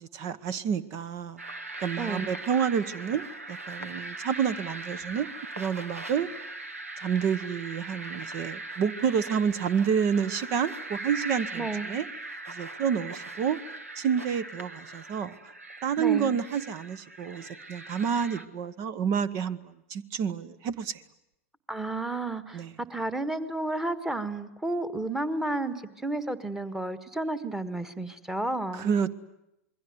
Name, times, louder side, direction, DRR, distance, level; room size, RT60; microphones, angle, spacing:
voice 1, 0.0-1.4 1.8-5.3 5.6-6.3 7.0-12.0 12.5-13.6 14.0-15.3 15.8-19.6 19.9-21.0 22.5-22.7 28.7-29.1, right 7 dB, 40° right, 18 dB, 1.2 m, -29 dB
sound 1, 1.4-18.5, right 2 dB, 80° right, 1.5 m, -40 dB
voice 2, 2.0-2.3 11.6-11.9 16.0-16.3 21.7-22.6 22.9-28.9, right 2 dB, 5° right, 13 dB, 1.6 m, -32 dB
27.5 x 22.0 x 9.4 m, 0.85 s
figure-of-eight pair, 90°, 8 cm